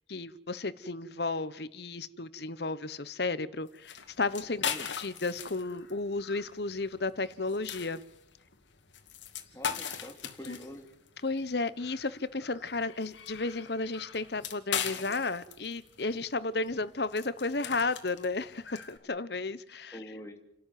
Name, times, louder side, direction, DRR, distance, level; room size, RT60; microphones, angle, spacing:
voice 1, 0.1-4.6 5.0-8.0 10.4-10.6 11.2-20.0, left 3 dB, 60° left, 15 dB, 1.1 m, -33 dB
sound 1, 3.7-19.0, left 8 dB, 75° left, 2.4 m, -40 dB
voice 2, 9.5-10.9 19.9-20.4, equal, 15° left, 5 dB, 2.8 m, -45 dB
30.0 x 12.5 x 9.4 m, 0.78 s
head